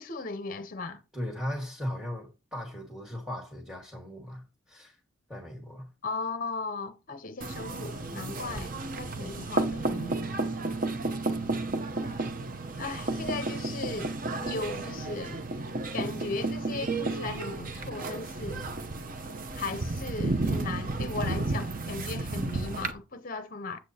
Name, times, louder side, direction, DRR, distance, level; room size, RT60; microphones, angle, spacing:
voice 1, 0.0-1.0 6.0-10.8 12.8-14.1 14.4-15.5 15.9-18.7 19.5-23.8, left 3 dB, 40° left, 0.6 m, -37 dB
voice 2, 1.1-4.9 5.3-5.9, equal, 5° right, 1.5 m, -37 dB
sound 1, 7.4-22.9, right 2 dB, 40° right, 0.7 m, -32 dB
8.2 x 7.6 x 2.8 m
head